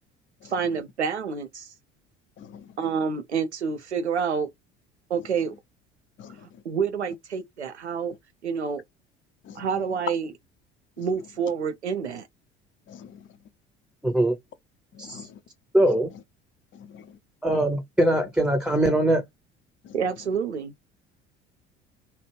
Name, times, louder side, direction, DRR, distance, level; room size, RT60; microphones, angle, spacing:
voice 1, 0.5-1.7 2.8-4.5 5.1-5.6 6.6-8.1 8.4-8.8 9.6-10.3 11.0-12.3 19.9-20.7, right 6 dB, 85° right, 0.6 m, -28 dB
voice 2, 12.9-13.3 14.9-15.4 16.7-17.1 19.8-19.9, left 8 dB, 35° left, 0.7 m, -46 dB
voice 3, 14.0-14.4 15.0-15.3 15.7-16.1 17.4-19.2, right 1 dB, 5° right, 0.7 m, -22 dB
3.0 x 2.3 x 3.0 m
figure-of-eight pair, 60°, 33 cm